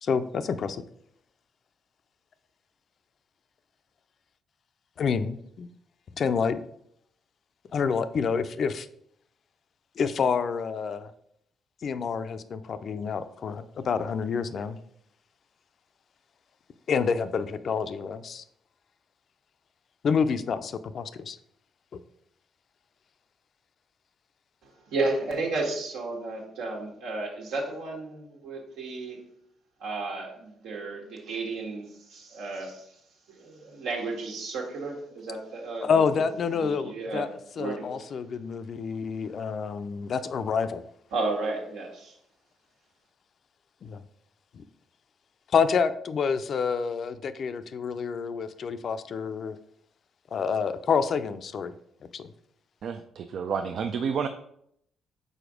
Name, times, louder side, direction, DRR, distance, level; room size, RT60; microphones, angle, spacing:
voice 1, 0.0-0.8 5.0-5.7 6.2-6.6 7.7-8.9 10.0-11.1 11.8-14.8 16.9-18.4 20.0-21.4 35.8-37.3 37.6-40.8 43.8-44.0 45.5-49.6 50.3-51.7 52.1-52.3, left 6 dB, 55° left, 11 dB, 0.4 m, -28 dB
voice 2, 24.9-29.2 29.8-32.8 33.4-36.1 36.6-37.3 37.6-37.9 41.1-42.1, right 3 dB, 85° right, 0 dB, 1.6 m, -33 dB
voice 3, 52.8-54.3, right 6 dB, 65° right, 7 dB, 0.4 m, -30 dB
4.9 x 4.2 x 5.0 m, 0.71 s
cardioid pair, 90°, 0 cm